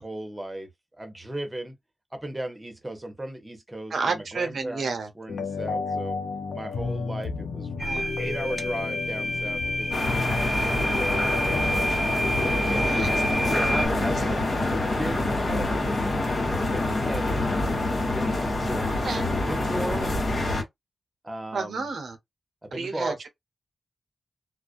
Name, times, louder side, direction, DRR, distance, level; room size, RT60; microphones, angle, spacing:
voice 1, 0.0-1.8 2.1-6.2 6.5-7.7 8.2-11.4 12.2-13.0 13.5-14.3 15.0-17.7 18.0-19.0 19.4-20.5 21.2-21.9 22.6-23.3, right 1 dB, 20° right, 0.8 m, -36 dB
voice 2, 3.9-5.1 7.8-8.2 12.7-13.1 13.4-13.8 19.1-19.3 21.5-22.2 22.7-23.3, right 4 dB, 80° right, 0.7 m, -31 dB
sound 1, 5.3-12.9, left 4 dB, 80° left, 0.5 m, -32 dB
sound 2, 7.8-13.9, equal, 30° left, 1.0 m, -29 dB
sound 3, 9.9-20.6, left 2 dB, 60° left, 1.1 m, -26 dB
2.3 x 2.1 x 2.5 m
wide cardioid pair, 75°, 0 cm